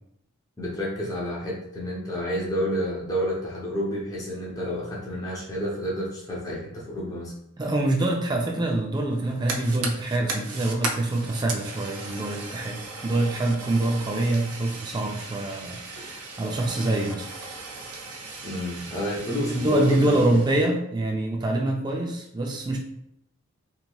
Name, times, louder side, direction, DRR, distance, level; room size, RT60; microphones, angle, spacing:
voice 1, 0.6-7.3 18.4-20.4, equal, 15° left, -5 dB, 0.6 m, -30 dB
voice 2, 7.6-17.3 19.5-22.8, right 2 dB, 20° right, 1 dB, 0.3 m, -25 dB
Fire, 9.1-20.7, right 3 dB, 90° right, 0.5 m, -37 dB
3.0 x 2.7 x 2.2 m, 0.77 s
head